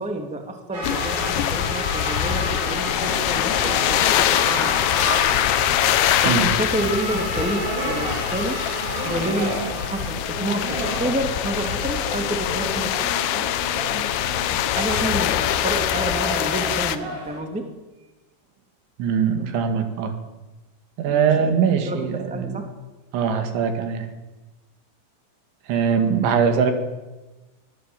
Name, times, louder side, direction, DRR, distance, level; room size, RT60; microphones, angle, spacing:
voice 1, 0.0-4.9 6.2-8.6 9.0-13.1 14.7-17.7 21.0-21.5 21.8-22.0 22.3-22.7, right 1 dB, 5° right, 4 dB, 1.3 m, -29 dB
sound 1, 0.7-17.4, right 1 dB, 50° right, 8.0 m, -31 dB
sound 2, 0.8-17.0, left 12 dB, 75° left, 3.3 m, -23 dB
voice 2, 19.0-20.1 21.0-22.6 23.1-24.1 25.7-26.7, right 6 dB, 75° right, 7 dB, 4.4 m, -21 dB
24.5 x 17.5 x 9.0 m, 1.1 s
omnidirectional pair, 5.5 m